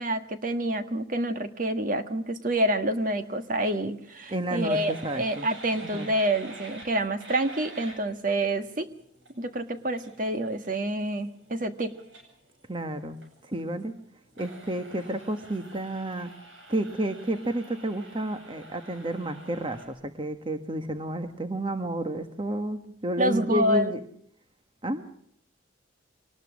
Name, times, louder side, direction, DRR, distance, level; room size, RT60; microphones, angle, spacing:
voice 1, 0.0-8.9 9.4-11.9 23.2-23.9, right 1 dB, 45° right, 8 dB, 1.6 m, -27 dB
sound 1, 2.9-19.9, right 2 dB, 85° right, 8.0 m, -49 dB
voice 2, 4.3-5.5 5.8-6.1 12.7-13.2 13.4-13.9 14.4-16.3 16.7-24.0 24.8-25.1, right 1 dB, 25° right, 7 dB, 1.3 m, -31 dB
24.0 x 19.5 x 6.3 m, 0.66 s
head